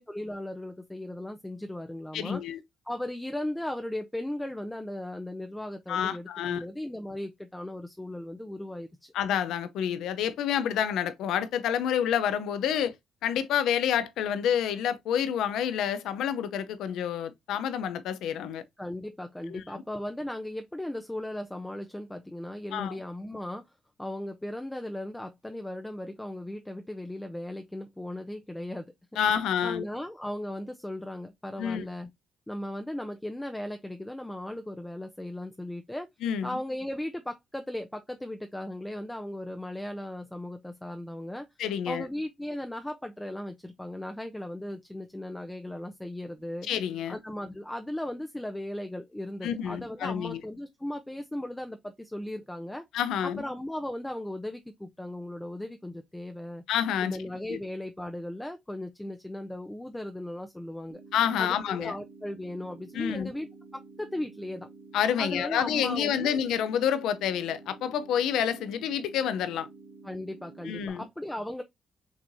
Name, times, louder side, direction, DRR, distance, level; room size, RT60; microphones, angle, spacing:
voice 1, 0.0-2.4 2.9-9.1 18.8-23.6 24.0-28.9 29.6-32.1 32.5-36.1 36.4-41.5 41.9-46.7 47.1-52.8 53.2-56.6 57.0-61.0 61.4-64.7 65.2-66.4 70.0-71.6, left 1 dB, 10° left, 0.6 m, -37 dB
voice 2, 2.1-2.6 5.9-6.6 9.1-12.9 13.2-18.6 19.5-19.6 22.7-23.0 29.2-29.8 31.6-31.9 36.2-36.5 41.6-42.1 46.6-47.2 49.4-50.4 52.9-53.4 56.7-57.2 57.5-57.6 61.1-61.9 62.9-63.3 64.9-69.7 70.6-71.1, left 9 dB, 85° left, 0.6 m, -28 dB
sound 1, 60.9-70.9, right 4 dB, 60° right, 1.7 m, -50 dB
6.0 x 3.1 x 2.6 m
cardioid pair, 90°, 0 cm